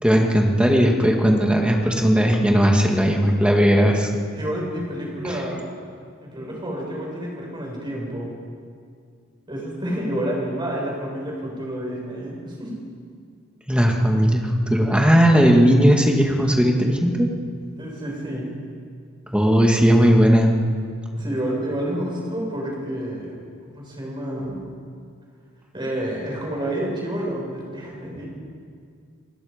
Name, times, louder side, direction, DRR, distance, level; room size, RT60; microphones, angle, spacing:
voice 1, 0.0-4.1 5.2-5.4 13.7-17.3 19.3-20.6, equal, 5° right, 1 dB, 2.1 m, -17 dB
voice 2, 4.3-5.6 6.2-8.3 9.5-12.8 17.8-18.5 21.1-23.3 23.6-24.6 25.7-28.3, right 1 dB, 20° right, -2 dB, 6.3 m, -29 dB
29.5 x 20.0 x 5.3 m, 2.2 s
head